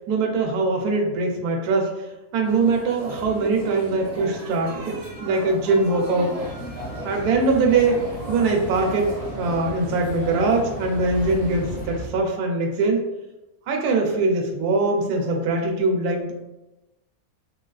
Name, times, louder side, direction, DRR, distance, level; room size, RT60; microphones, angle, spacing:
voice 1, 0.1-2.1 2.3-6.4 7.0-13.1 13.7-16.3, right 3 dB, 85° right, 1 dB, 1.1 m, -22 dB
sound 1, 2.4-11.9, right 1 dB, 45° right, 0.9 m, -37 dB
sound 2, 6.3-12.1, equal, 80° left, 1.3 m, -36 dB
3.8 x 2.3 x 2.3 m, 0.99 s
omnidirectional pair, 1.6 m